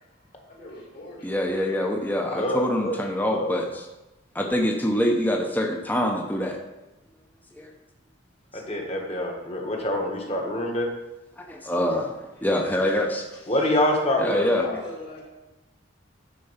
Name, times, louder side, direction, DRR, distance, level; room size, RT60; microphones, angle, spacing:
voice 1, 0.4-1.3 12.4-12.5 14.5-15.2, left 1 dB, 50° left, -3 dB, 2.7 m, -40 dB
voice 2, 1.2-3.9 4.3-6.6 7.5-7.7 11.4-13.2 14.2-14.7, left 1 dB, 10° left, 2 dB, 0.7 m, -25 dB
voice 3, 2.3-2.9 3.3-3.5 8.5-10.9 13.5-14.4, left 1 dB, 30° left, 0 dB, 1.5 m, -25 dB
10.0 x 4.5 x 5.7 m, 1.0 s
head